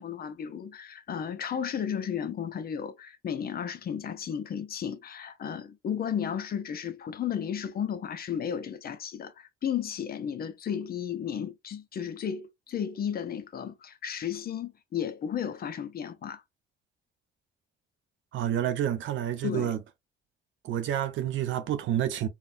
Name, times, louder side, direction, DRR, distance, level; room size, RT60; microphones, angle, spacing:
voice 1, 0.0-16.4 19.4-19.7, left 8 dB, 50° left, 0.6 m, -34 dB
voice 2, 18.3-19.8 20.6-22.3, right 11 dB, 75° right, 0.7 m, -29 dB
3.8 x 2.2 x 2.5 m
cardioid pair, 90°, 20 cm